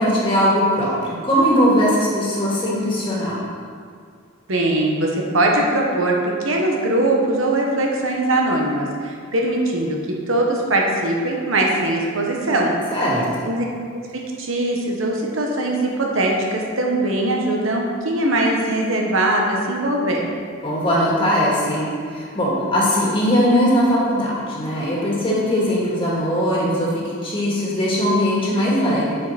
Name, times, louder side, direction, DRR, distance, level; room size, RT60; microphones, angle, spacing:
voice 1, 0.0-3.4 12.9-13.5 20.6-29.2, equal, 25° left, -6 dB, 1.9 m, -20 dB
voice 2, 4.5-6.2 6.4-10.0 10.3-12.7 13.4-13.6 14.4-20.3, right 1 dB, 75° right, -1 dB, 1.2 m, -21 dB
8.9 x 5.4 x 4.2 m, 2.1 s
head